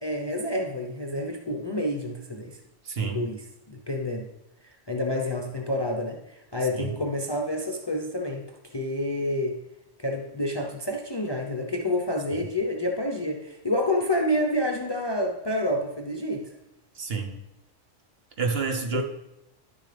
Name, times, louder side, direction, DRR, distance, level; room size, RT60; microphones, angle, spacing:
voice 1, 0.0-2.6 3.0-3.4 3.7-4.3 4.9-8.5 8.7-9.6 10.0-16.5 18.9-19.0, left 1 dB, 25° left, 2 dB, 0.6 m, -28 dB
voice 2, 2.8-3.2 6.7-6.9 12.3-12.4 16.9-17.4 18.4-19.0, right 4 dB, 55° right, 3 dB, 1.1 m, -29 dB
10.5 x 6.6 x 3.4 m, 0.90 s
omnidirectional pair, 1.3 m